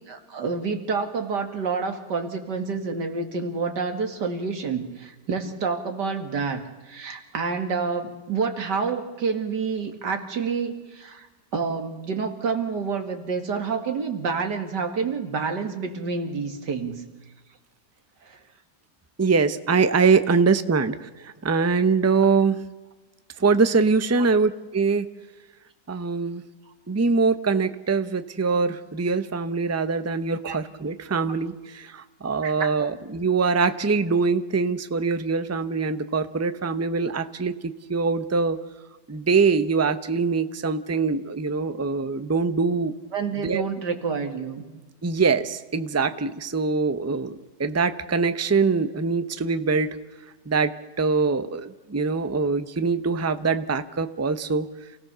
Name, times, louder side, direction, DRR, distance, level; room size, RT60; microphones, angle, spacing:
voice 1, 0.1-11.3 11.5-17.0 18.3-18.4 30.5-30.6 32.4-32.7 43.1-44.6, right 5 dB, 75° right, 6 dB, 2.7 m, -28 dB
voice 2, 19.2-22.6 23.4-25.1 25.9-26.4 26.9-38.6 39.1-42.9 43.4-43.6 45.0-50.0 50.5-54.7, right 4 dB, 25° right, 11 dB, 0.3 m, -23 dB
28.0 x 17.0 x 6.8 m, 1.2 s
omnidirectional pair, 1.8 m